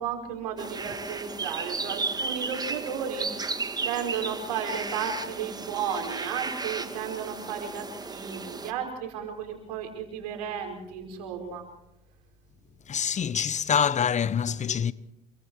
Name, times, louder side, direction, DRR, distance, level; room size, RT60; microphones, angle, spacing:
voice 1, 0.0-3.3 3.8-11.6, right 7 dB, 90° right, 5.5 m, -34 dB
sound 1, 0.6-8.7, right 3 dB, 20° right, 2.2 m, -34 dB
voice 2, 12.9-14.9, left 7 dB, 40° left, 1.1 m, -25 dB
29.0 x 24.0 x 4.9 m
hypercardioid pair, 75°, 20 cm